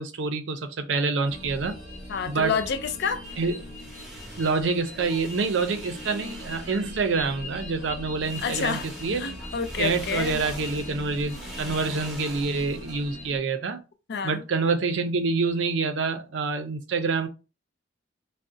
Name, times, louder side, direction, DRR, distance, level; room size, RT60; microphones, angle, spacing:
voice 1, 0.0-1.8 2.3-2.6 3.4-3.6 4.4-9.3 9.8-13.8 14.2-17.3, right 4 dB, 70° right, 0.5 m, -27 dB
sound 1, 1.2-13.4, left 1 dB, 40° left, 0.9 m, -41 dB
voice 2, 2.1-3.2 8.4-8.9 9.2-10.4 14.1-14.4, left 6 dB, 60° left, 0.4 m, -29 dB
sound 2, 3.2-7.9 8.2-13.1, equal, ahead, 0.9 m, -43 dB
2.5 x 2.0 x 3.6 m
head